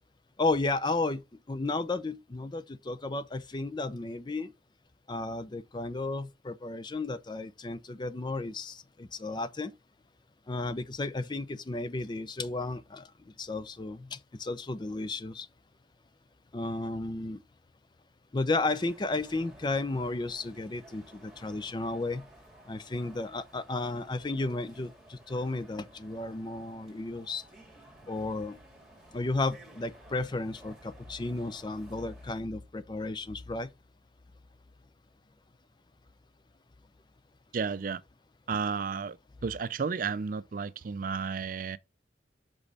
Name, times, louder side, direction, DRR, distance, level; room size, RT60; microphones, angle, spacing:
voice 1, 0.4-4.5 5.1-9.7 10.5-13.1 13.4-15.5 16.5-17.4 18.3-22.3 22.7-27.4 28.1-28.6 29.1-33.7, left 2 dB, 25° left, 0.5 m, -33 dB
sound 1, 18.5-32.4, right 1 dB, ahead, 2.6 m, -55 dB
voice 2, 37.5-38.0 38.5-39.2 39.4-41.8, right 5 dB, 50° right, 0.4 m, -32 dB
6.1 x 5.3 x 4.0 m
head